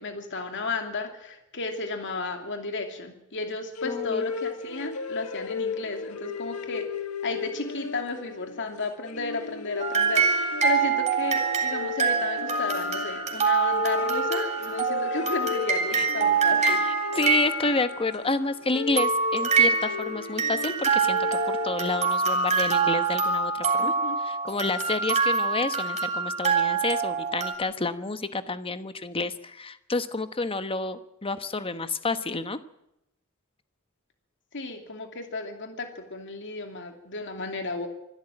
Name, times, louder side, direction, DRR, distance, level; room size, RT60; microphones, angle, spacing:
voice 1, 0.0-6.9 7.2-16.8 23.8-24.2 34.5-37.9, left 3 dB, 55° left, 5 dB, 2.6 m, -33 dB
sound 1, 3.8-22.3, left 6 dB, 80° left, 1.4 m, -35 dB
voice 2, 3.8-4.2 15.9-16.1 16.6-32.6, left 3 dB, 25° left, 11 dB, 1.1 m, -30 dB
sound 2, 9.8-18.1 19.0-27.5, right 5 dB, 30° right, 3.4 m, -25 dB
24.5 x 13.0 x 9.1 m, 0.83 s
head